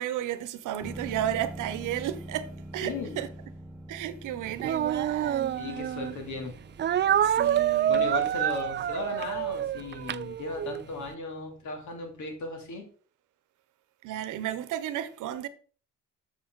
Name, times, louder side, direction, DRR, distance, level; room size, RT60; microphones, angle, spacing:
voice 1, 0.0-3.3 3.9-5.6 7.2-8.1 14.0-15.5, right 11 dB, 85° right, 0.9 m, -33 dB
sound 1, 0.8-12.4 12.7-12.8, right 1 dB, 5° right, 0.9 m, -46 dB
voice 2, 2.8-3.2 5.6-6.5 7.9-12.8, left 3 dB, 70° left, 2.8 m, -36 dB
Speech, 4.6-6.2 6.8-10.8, right 10 dB, 40° right, 0.4 m, -27 dB
7.2 x 6.8 x 3.9 m
cardioid pair, 90°, 30 cm